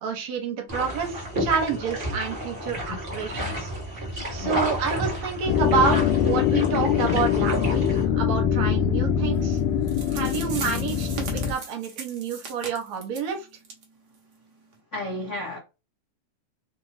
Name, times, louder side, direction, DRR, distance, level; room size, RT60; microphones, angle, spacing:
voice 1, 0.0-3.7 4.3-9.6 10.1-13.5, right 6 dB, 70° right, 2.0 m, -29 dB
sound 1, 0.7-8.0, equal, 45° right, 0.6 m, -31 dB
sound 2, 5.5-11.5, left 8 dB, 90° left, 2.0 m, -23 dB
sound 3, 9.6-9.7 9.9-13.3 13.6-13.8 14.1-14.2 14.7-14.8, right 5 dB, 85° right, 0.9 m, -38 dB
voice 2, 14.9-15.6, left 2 dB, 70° left, 0.6 m, -33 dB
4.6 x 2.5 x 3.2 m
omnidirectional pair, 3.4 m